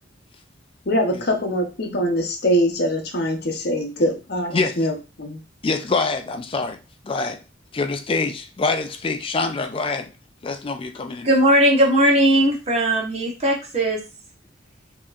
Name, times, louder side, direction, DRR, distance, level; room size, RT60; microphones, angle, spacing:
voice 1, 0.9-5.4, equal, 55° left, 0.8 m, -23 dB
voice 2, 4.5-4.9 5.6-6.8 7.0-7.4 7.7-10.1 10.4-11.3, left 3 dB, 30° left, 0.4 m, -25 dB
voice 3, 11.2-14.0, right 1 dB, 35° right, 1.1 m, -18 dB
4.4 x 2.9 x 2.4 m
head